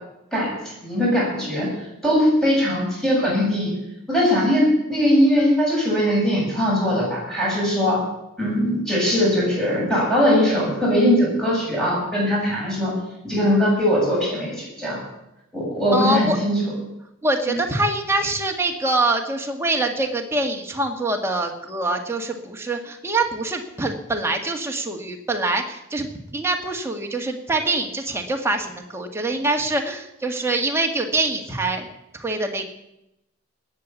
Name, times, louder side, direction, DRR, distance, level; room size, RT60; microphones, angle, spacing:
voice 1, 0.8-1.7 2.0-3.7 4.1-8.0 8.4-12.9 13.2-15.0 15.5-16.7 17.5-17.6, equal, 5° left, -5 dB, 7.6 m, -20 dB
voice 2, 15.9-16.4 17.2-31.9 32.2-32.6, right 2 dB, 10° right, 2 dB, 1.8 m, -24 dB
19.5 x 8.4 x 7.3 m, 0.88 s
head